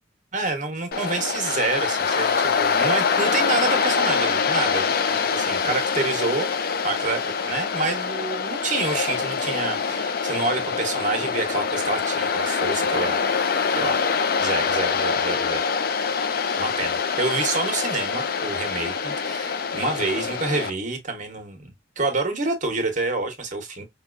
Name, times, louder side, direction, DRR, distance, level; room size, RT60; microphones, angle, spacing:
voice 1, 0.3-6.5 6.8-7.2 7.5-14.0 14.4-15.6 16.6-23.8, right 3 dB, 45° right, 1.0 m, -28 dB
Waves surf, 0.9-20.7, left 5 dB, 55° left, 0.5 m, -24 dB
5.3 x 2.3 x 2.4 m
head